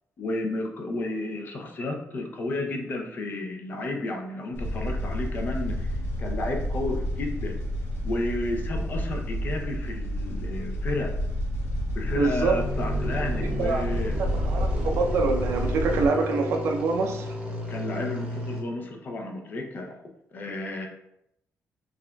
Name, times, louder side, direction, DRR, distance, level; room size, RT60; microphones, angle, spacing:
voice 1, 0.2-5.9 6.2-7.6 8.0-11.2 11.9-14.2 17.7-20.0 20.3-20.9, left 2 dB, 35° left, 3 dB, 0.5 m, -32 dB
sound 1, 4.5-16.1, equal, 55° left, 0.9 m, -29 dB
voice 2, 12.2-12.6 13.6-13.8 14.3-17.3, right 4 dB, 60° right, 3 dB, 0.5 m, -25 dB
sound 2, 12.3-18.6, equal, 20° right, 0.8 m, -34 dB
5.6 x 2.5 x 2.3 m, 0.78 s
cardioid pair, 170°, 5 cm